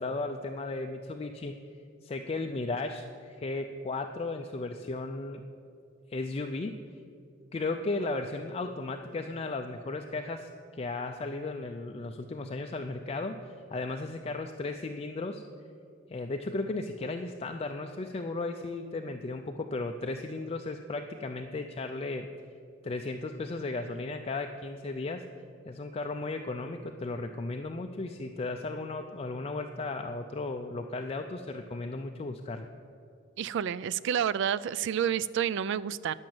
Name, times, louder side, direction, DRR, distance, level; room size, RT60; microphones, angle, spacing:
voice 1, 0.0-1.6 2.0-5.5 6.1-6.8 7.5-15.4 16.1-22.3 22.8-25.2 25.7-32.7, left 3 dB, 30° left, 5 dB, 0.4 m, -35 dB
voice 2, 33.4-36.1, right 8 dB, 65° right, 18 dB, 0.3 m, -29 dB
10.5 x 6.2 x 7.6 m, 2.5 s
head